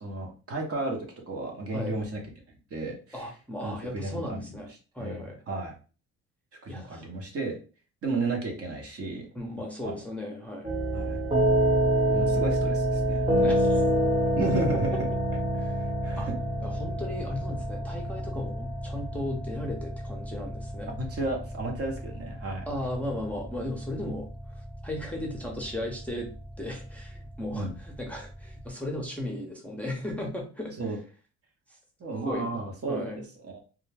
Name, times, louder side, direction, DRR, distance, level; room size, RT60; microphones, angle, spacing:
voice 1, 0.0-2.2 2.7-3.3 3.6-4.5 5.0-5.7 6.6-7.6 8.0-9.3 9.5-10.0 10.9-11.2 12.0-13.2 14.4-15.1 15.8-16.3 21.0-22.7 27.5-27.7 30.8-31.0 32.0-33.1 33.4-33.6, right 2 dB, 50° right, 1 dB, 0.9 m, -33 dB
voice 2, 3.1-4.7 4.9-5.4 6.7-7.1 9.3-10.7 13.4-13.8 15.6-15.7 16.2-16.3 16.6-20.9 22.7-24.3 24.8-26.3 26.6-30.7 32.1-32.6 32.9-33.2, left 1 dB, 5° left, 0 dB, 0.7 m, -36 dB
sound 1, 10.6-28.6, right 1 dB, 20° right, 0.9 m, -28 dB
2.3 x 2.1 x 3.3 m, 0.36 s
cardioid pair, 90°, 30 cm